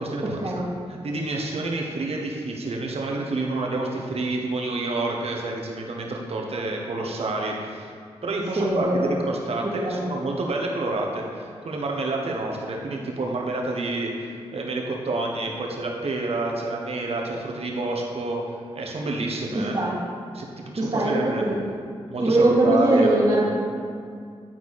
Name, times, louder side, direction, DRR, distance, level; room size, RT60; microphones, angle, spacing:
voice 1, 0.0-7.9 8.2-18.4 18.7-19.8 20.3-21.5 22.1-23.4, right 2 dB, 65° right, 0 dB, 1.3 m, -29 dB
voice 2, 8.6-9.1 9.8-10.1 19.5-20.0 20.8-21.6 22.2-23.4, right 1 dB, 45° right, -8 dB, 1.8 m, -21 dB
10.5 x 4.6 x 4.3 m, 2.2 s
cardioid pair, 50°, 11 cm